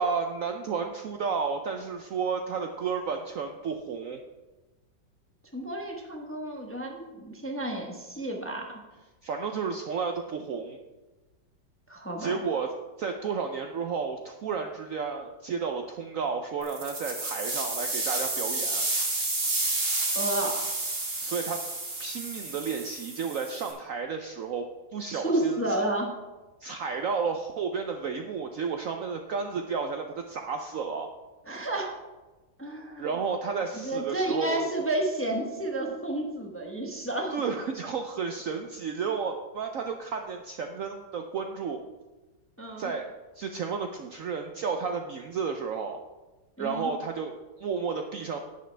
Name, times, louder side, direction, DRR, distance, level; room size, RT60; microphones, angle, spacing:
voice 1, 0.0-4.2 9.2-10.8 12.2-12.7 13.0-18.9 21.2-21.6 22.0-24.7 24.9-25.8 26.6-31.1 33.0-34.7 37.3-41.8 42.8-43.1 43.3-46.0 46.6-48.4, right 5 dB, 65° right, 5 dB, 0.8 m, -32 dB
voice 2, 5.5-8.8 11.9-12.4 20.1-20.6 25.1-26.1 31.5-31.9 32.6-33.1 33.8-37.4 42.6-42.9 46.6-46.9, right 1 dB, 10° left, 1 dB, 0.8 m, -31 dB
sound 1, 16.6-23.7, right 2 dB, 45° right, 2.3 m, -31 dB
10.5 x 9.5 x 3.3 m, 1.2 s
omnidirectional pair, 1.9 m